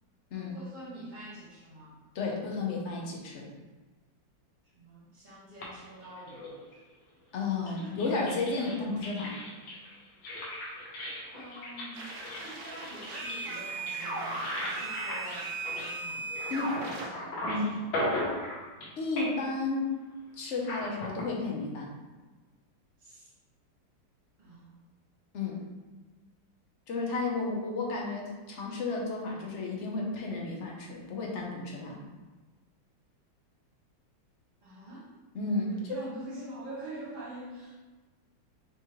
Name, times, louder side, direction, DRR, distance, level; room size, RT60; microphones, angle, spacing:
voice 1, 0.3-2.0 4.7-6.6 7.6-8.0 11.3-18.0 23.0-23.3 24.4-24.8 34.6-35.1 35.7-37.8, right 1 dB, 25° right, -8 dB, 1.5 m, -46 dB
voice 2, 2.1-3.5 7.3-9.4 16.5-16.7 17.5-17.7 19.0-19.9 20.4-21.9 25.3-25.6 26.9-32.0 35.3-36.0, left 3 dB, 55° left, -1 dB, 0.8 m, -32 dB
sound 1, 5.6-6.9 7.5-16.8 17.1-18.9 19.2-19.6 20.6-21.2, left 1 dB, 85° left, 1.8 m, -38 dB
sound 2, 11.9-17.1, right 3 dB, 70° right, 1.4 m, -37 dB
5.8 x 3.0 x 3.1 m, 1.3 s
omnidirectional pair, 2.1 m